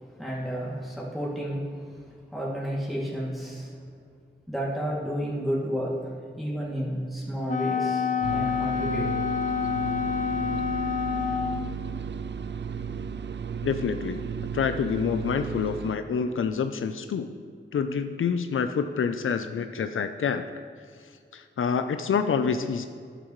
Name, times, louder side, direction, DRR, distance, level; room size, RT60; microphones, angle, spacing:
voice 1, 0.2-3.9 4.5-6.0 6.3-9.2, equal, ahead, -6 dB, 2.4 m, -31 dB
Wind instrument woodwind instrument, 7.5-11.8, left 7 dB, 40° left, 0.6 m, -28 dB
sound 1, 8.2-16.0, right 6 dB, 60° right, 0.5 m, -34 dB
voice 2, 13.6-14.3 14.5-17.3 17.7-20.5 21.3-22.9, left 6 dB, 90° left, 8 dB, 0.5 m, -27 dB
11.5 x 11.0 x 3.1 m, 2.1 s
wide cardioid pair, 75°, 20 cm